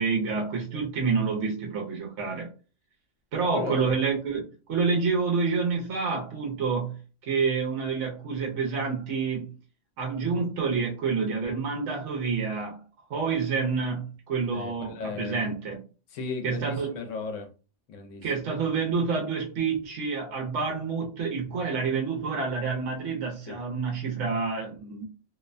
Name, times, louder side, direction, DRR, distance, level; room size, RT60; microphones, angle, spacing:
voice 1, 0.0-2.5 3.3-9.5 10.0-12.8 13.1-15.8 16.4-16.9 18.2-25.0, right 5 dB, 80° right, 1.0 m, -28 dB
voice 2, 3.4-3.9 14.5-15.4 16.1-17.5 17.9-18.3 23.5-23.6, left 4 dB, 85° left, 1.0 m, -36 dB
2.6 x 2.1 x 2.4 m
omnidirectional pair, 1.3 m